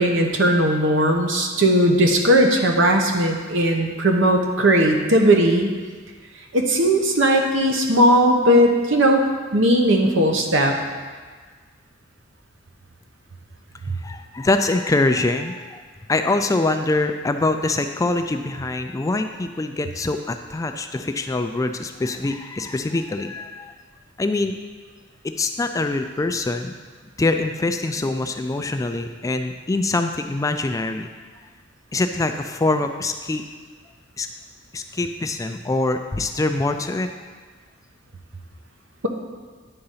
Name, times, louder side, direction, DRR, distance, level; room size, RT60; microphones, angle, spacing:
voice 1, 0.0-5.7 6.5-9.2 9.5-10.7, right 1 dB, 70° right, 2 dB, 1.0 m, -18 dB
voice 2, 14.0-15.8 16.1-23.8 24.2-24.6 25.4-26.8 27.2-31.1 31.9-33.4 34.2-34.3 34.7-37.1, left 2 dB, 15° left, 6 dB, 0.3 m, -24 dB
9.9 x 3.9 x 5.6 m, 1.5 s
head